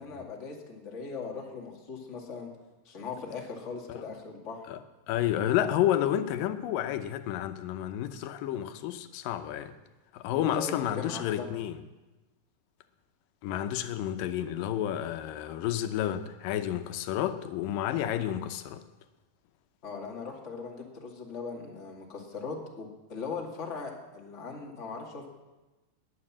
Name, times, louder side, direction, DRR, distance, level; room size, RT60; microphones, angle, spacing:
voice 1, 0.0-2.5 2.9-4.7 10.3-11.5 19.8-25.3, left 4 dB, 25° left, 2.0 m, -39 dB
voice 2, 5.1-9.7 10.1-11.8 13.4-18.8, left 11 dB, 90° left, 2.5 m, -30 dB
20.0 x 9.6 x 7.4 m
omnidirectional pair, 3.8 m